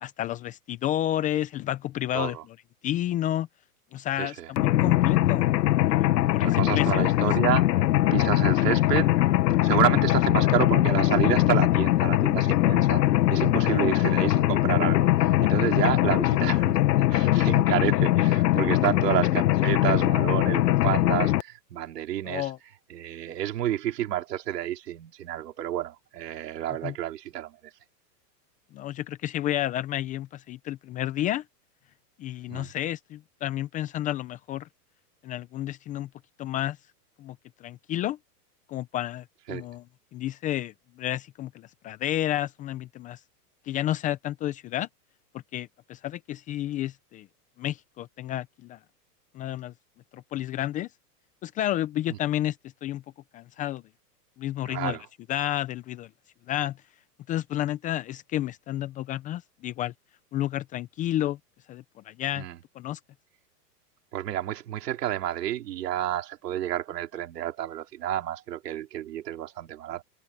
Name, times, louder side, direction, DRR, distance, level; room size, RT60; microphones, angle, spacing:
voice 1, 0.0-2.4 2.8-3.5 3.9-5.5 5.9-7.1 13.7-13.8 22.3-22.6 26.8-26.9 28.7-31.4 32.2-34.7 35.2-36.1 36.4-36.8 37.2-37.4 37.6-38.2 38.7-39.8 40.1-43.2 43.7-44.9 45.5-47.3 47.6-48.8 49.3-49.7 50.1-50.9 51.4-52.6 52.8-53.0 53.3-53.8 54.4-55.0 55.3-56.1 56.5-56.8 57.3-59.9 60.3-61.4 61.7-62.4 62.8-63.0, left 13 dB, 15° left, 0.5 m, -31 dB
voice 2, 2.1-2.4 4.2-4.5 6.4-16.8 17.1-22.5 22.9-27.6 32.5-32.7 39.5-39.7 52.1-52.2 54.7-55.1 62.4-62.6 64.1-70.0, right 12 dB, 75° right, 4.0 m, -30 dB
Mechanisms, 4.6-21.4, left 14 dB, 85° left, 0.9 m, -22 dB
hypercardioid pair, 140°, 48 cm